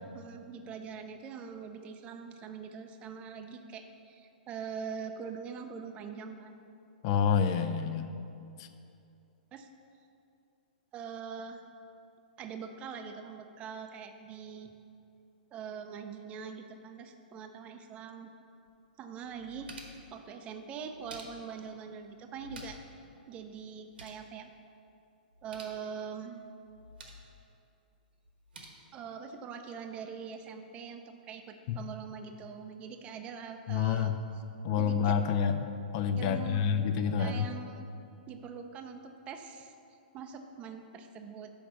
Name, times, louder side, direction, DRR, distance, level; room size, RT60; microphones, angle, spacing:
voice 1, 0.0-6.6 9.5-9.7 10.9-11.6 12.4-14.7 15.5-18.3 19.0-19.7 20.1-22.8 23.3-24.5 25.4-26.4 28.9-34.4 34.8-35.2 36.2-36.6 37.2-37.9 38.3-39.0 39.3-39.7 40.1-41.5, right 6 dB, 25° right, 6 dB, 0.5 m, -43 dB
voice 2, 7.0-8.1 8.6-8.7 31.7-31.8 33.7-34.2 34.6-35.7 35.9-37.5, left 7 dB, 40° left, 9 dB, 0.4 m, -28 dB
sound 1, 18.7-18.8 19.2-20.1 20.8-21.7 22.3-23.0 23.2-23.3 23.7-24.3 25.3-25.8 26.6-27.3 28.2-28.7, right 1 dB, 90° right, 1.2 m, -50 dB
6.0 x 5.0 x 6.6 m, 2.6 s
hypercardioid pair, 140°, 5 cm